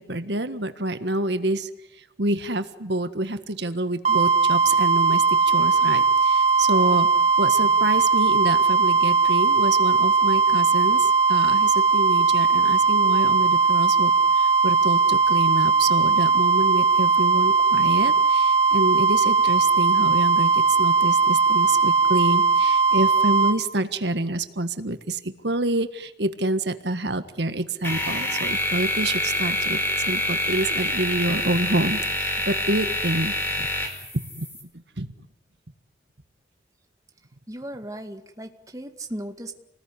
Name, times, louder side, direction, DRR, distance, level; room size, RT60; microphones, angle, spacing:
voice 1, 0.0-1.7 2.0-7.1 7.4-29.8 30.1-33.7 34.4-34.5 35.0-35.1, right 2 dB, 70° right, 10 dB, 1.6 m, -27 dB
sound 1, 4.0-23.6, right 4 dB, 35° right, 1.4 m, -19 dB
sound 2, 27.8-34.6, left 1 dB, 10° left, 5.1 m, -26 dB
voice 2, 37.5-39.5, right 1 dB, 20° right, 5 dB, 2.0 m, -36 dB
28.5 x 19.5 x 9.9 m, 0.87 s
head